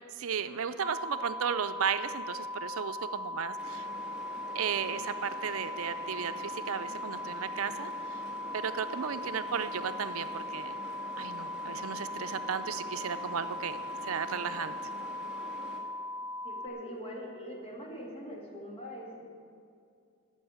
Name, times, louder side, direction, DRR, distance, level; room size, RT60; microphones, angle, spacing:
voice 1, 0.2-3.9 4.5-7.9 8.5-10.8 11.2-14.8, right 7 dB, 75° right, 11 dB, 0.5 m, -34 dB
sound 1, 0.8-16.7, left 1 dB, 85° left, 0.9 m, -39 dB
sound 2, 3.6-15.8, right 1 dB, 5° right, 2.0 m, -47 dB
voice 2, 16.4-19.3, equal, 30° left, -1 dB, 2.2 m, -42 dB
13.5 x 6.2 x 8.6 m, 2.4 s
head